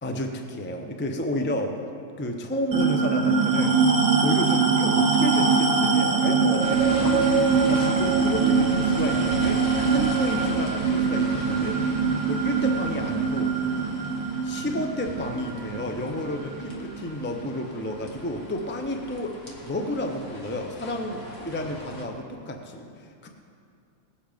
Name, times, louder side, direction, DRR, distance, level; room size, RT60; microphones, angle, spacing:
voice 1, 0.0-1.8 2.2-3.8 4.2-11.8 12.3-13.6 14.4-23.3, left 1 dB, 10° left, 3 dB, 0.6 m, -31 dB
sound 1, 2.7-17.5, right 5 dB, 65° right, 1.7 m, -23 dB
sound 2, 6.6-22.0, left 1 dB, 60° left, 2.0 m, -39 dB
19.0 x 7.9 x 5.1 m, 2.5 s
omnidirectional pair, 1.5 m